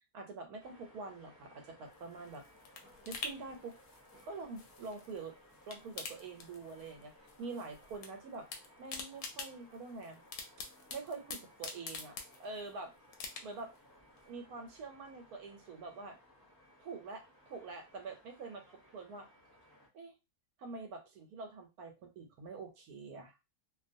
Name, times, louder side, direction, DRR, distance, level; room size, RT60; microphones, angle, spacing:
voice 1, 0.1-2.4 3.1-3.8 4.2-5.3 5.7-7.1 7.4-8.5 8.8-10.2 10.9-12.9 13.4-13.7 14.2-16.2 16.8-18.6 18.9-19.3 19.9-20.1 20.6-23.4, right 3 dB, 75° right, 4 dB, 1.1 m, -45 dB
sound 1, 0.6-19.9, left 1 dB, 20° left, 0.5 m, -62 dB
sound 2, 1.9-5.2 5.5-7.0 7.3-8.1 8.3-12.7 13.1-13.8 14.2-14.3, left 4 dB, 70° left, 0.8 m, -46 dB
2.6 x 2.3 x 2.5 m, 0.25 s
omnidirectional pair, 1.7 m